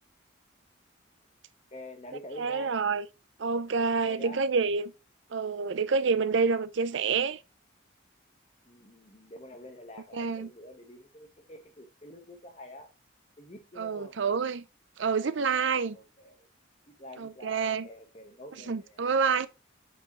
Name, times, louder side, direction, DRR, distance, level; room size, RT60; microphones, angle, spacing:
voice 1, 1.7-2.7 3.6-4.4 8.6-12.9 13.4-14.2 15.9-16.5 16.9-19.1, left 1 dB, 30° left, 1.3 m, -47 dB
voice 2, 2.4-3.1 3.4-4.9 5.3-7.4 10.1-10.5 13.8-14.6 15.0-16.0 17.2-17.9 18.7-19.5, right 5 dB, 70° right, 0.5 m, -28 dB
8.1 x 4.7 x 3.1 m
head